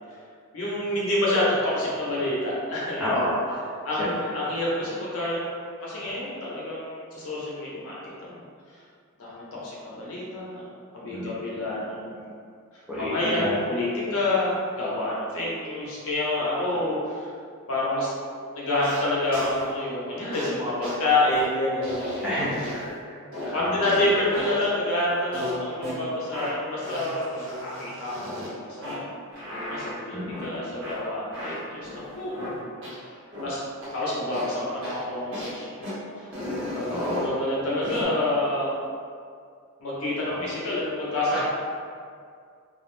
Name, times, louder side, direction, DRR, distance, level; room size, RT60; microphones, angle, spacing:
voice 1, 0.5-3.3 3.8-8.4 9.2-10.7 10.9-12.3 12.7-17.3 17.7-18.1 18.5-22.1 23.5-29.1 29.7-31.9 32.2-32.3 33.1-35.9 36.2-36.3 36.7-38.7 39.8-41.4, left 1 dB, 65° left, -6 dB, 0.7 m, -28 dB
voice 2, 3.0-3.5 4.0-4.1 11.1-11.3 12.9-13.6 16.7-16.8 22.2-22.9 23.4-24.0 24.3-24.4 30.1-30.4 36.9-37.3 40.3-40.5 41.3-41.4, left 1 dB, 5° right, -9 dB, 0.4 m, -29 dB
sound 1, 18.8-19.0 19.3-19.6 20.3-20.5 20.8-21.0 21.3-21.5 21.8-22.9 23.3-24.0 24.3-24.7 25.3-26.0 26.3-26.5 26.8-28.5 28.8-29.0 29.3-29.9 30.3-30.5 30.8-30.9 31.3-32.5 32.8-32.9 33.3-33.5 33.8-34.0 34.3-34.6 34.8-35.0 35.3-35.6 35.8-35.9 36.3-37.3 37.8-38.1, left 1 dB, 60° right, 0.7 m, -35 dB
2.4 x 2.0 x 3.1 m, 2.2 s
head